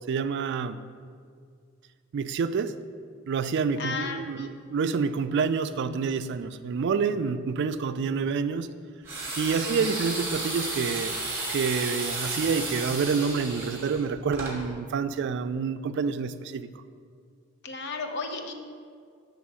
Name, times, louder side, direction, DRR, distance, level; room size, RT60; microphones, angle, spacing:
voice 1, 0.1-0.8 2.1-2.7 3.3-8.7 9.4-11.1 11.5-16.7, right 5 dB, 55° right, 12 dB, 0.3 m, -28 dB
voice 2, 3.8-4.5 9.6-10.0 17.6-18.5, left 4 dB, 55° left, 4 dB, 0.7 m, -35 dB
sound 1, 9.0-14.6, right 2 dB, 15° right, 1.4 m, -33 dB
7.4 x 3.5 x 6.1 m, 2.2 s
head